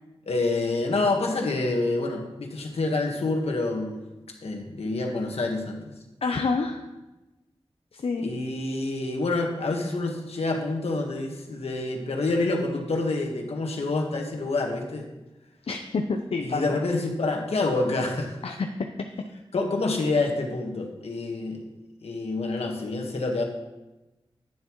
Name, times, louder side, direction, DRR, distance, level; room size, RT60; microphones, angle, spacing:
voice 1, 0.2-4.0 4.4-5.8 8.2-15.1 16.4-18.4 19.5-21.6 22.0-23.4, left 2 dB, 90° left, 1 dB, 1.5 m, -27 dB
voice 2, 6.2-6.9 7.9-8.3 15.7-16.6 18.4-18.7, left 4 dB, 75° left, 4 dB, 0.6 m, -28 dB
11.0 x 9.4 x 3.1 m, 1.0 s
wide cardioid pair, 100°, 10 cm